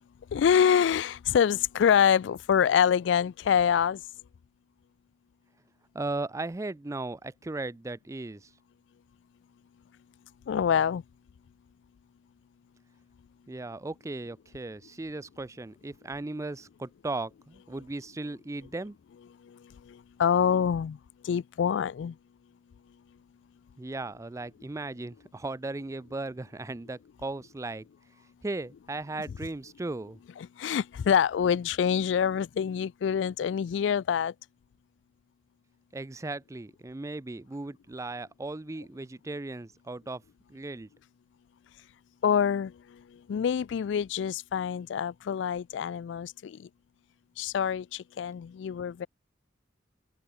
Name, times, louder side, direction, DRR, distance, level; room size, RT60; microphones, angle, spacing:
voice 1, 0.3-4.0 10.5-11.0 19.9-21.0 21.2-22.1 30.6-34.3 42.2-42.7 43.3-46.6 47.4-49.1, left 8 dB, 75° left, 0.3 m, -25 dB
voice 2, 5.9-8.5 13.5-19.0 23.8-27.9 28.4-30.2 35.9-40.2 40.5-40.9, right 2 dB, 15° right, 0.4 m, -37 dB
head